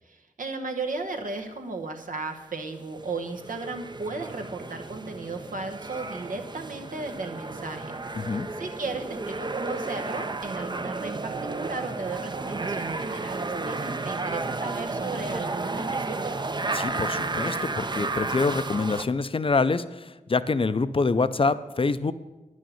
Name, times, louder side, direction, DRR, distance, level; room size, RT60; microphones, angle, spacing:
voice 1, 0.0-16.5, right 3 dB, 80° right, 5 dB, 1.1 m, -35 dB
sound 1, 2.9-19.1, right 3 dB, 35° right, 0.6 m, -32 dB
voice 2, 8.2-8.5 16.7-22.1, left 4 dB, 40° left, 14 dB, 0.5 m, -26 dB
9.9 x 6.4 x 7.0 m, 1.1 s
cardioid pair, 55°, 14 cm